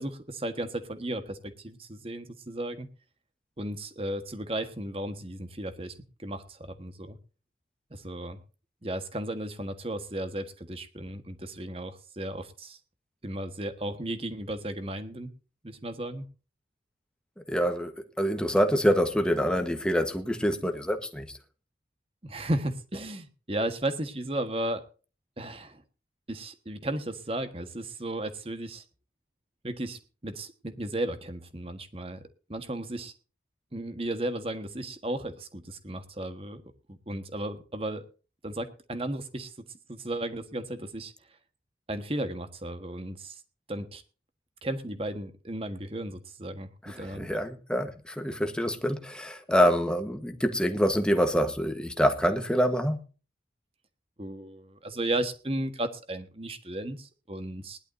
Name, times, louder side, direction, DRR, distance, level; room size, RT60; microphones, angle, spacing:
voice 1, 0.0-2.9 3.6-5.9 6.2-7.2 7.9-8.4 8.8-12.8 13.2-15.3 15.6-16.3 22.2-24.8 25.4-25.8 26.3-28.8 29.6-32.2 32.5-33.1 33.7-36.6 36.9-38.0 38.4-39.5 39.9-41.1 41.9-43.4 43.7-44.0 44.6-47.3 54.2-57.8, right 1 dB, 30° right, 1.5 m, -34 dB
voice 2, 17.5-17.9 18.2-21.4 46.8-53.0, equal, 5° left, 1.3 m, -26 dB
20.0 x 11.5 x 2.7 m
head